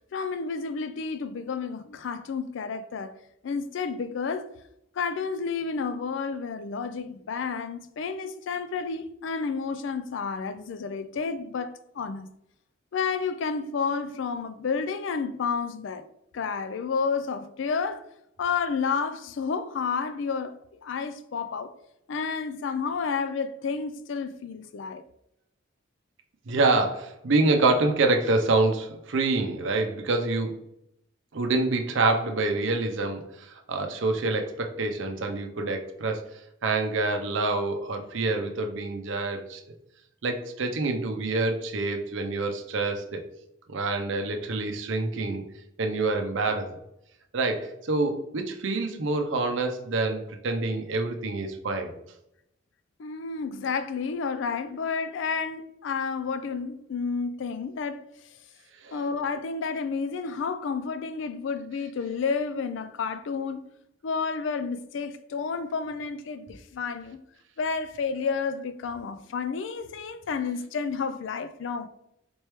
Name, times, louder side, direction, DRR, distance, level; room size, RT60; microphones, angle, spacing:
voice 1, 0.1-3.1 3.4-4.5 5.0-12.3 12.9-16.1 16.3-18.0 18.4-21.7 22.1-25.0 53.0-58.0 58.9-63.7 64.0-67.2 67.6-71.9, left 5 dB, 65° left, 0.4 m, -30 dB
voice 2, 26.5-30.6 31.3-36.3 36.6-39.6 40.2-43.2 43.7-45.4 45.8-46.8 47.3-51.9 58.8-59.0, right 3 dB, 65° right, 0.6 m, -26 dB
4.3 x 3.1 x 3.3 m
head